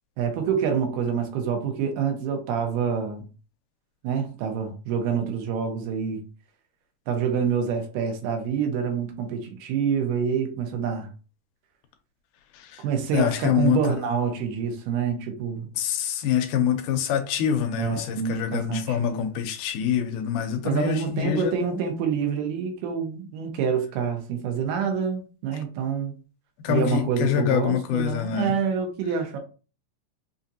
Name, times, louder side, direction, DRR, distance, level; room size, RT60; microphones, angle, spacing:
voice 1, 0.2-3.3 4.0-6.2 7.1-11.1 12.8-15.7 17.8-19.4 20.6-26.1 26.7-29.4, right 7 dB, 90° right, 2.4 m, -27 dB
voice 2, 13.1-14.0 15.8-21.8 24.9-25.0 26.6-28.5, left 9 dB, 85° left, 2.1 m, -25 dB
5.6 x 2.5 x 2.7 m
omnidirectional pair, 3.7 m